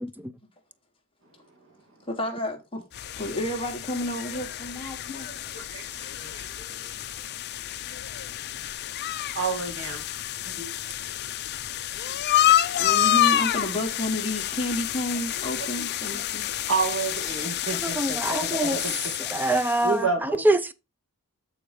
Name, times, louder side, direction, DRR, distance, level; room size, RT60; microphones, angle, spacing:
voice 1, 2.1-2.8 3.2-5.3 12.8-16.5, left 1 dB, 25° left, 1.2 m, -31 dB
sound 1, 2.9-19.9, left 12 dB, 50° left, 0.4 m, -28 dB
voice 2, 5.5-5.9 6.2-6.7 9.3-10.0 10.4-10.7 16.1-16.2 16.7-19.1 19.8-20.4, right 4 dB, 65° right, 2.3 m, -30 dB
voice 3, 17.8-18.8 19.3-20.1 20.4-20.7, right 1 dB, 10° right, 0.4 m, -24 dB
8.5 x 3.9 x 4.9 m
head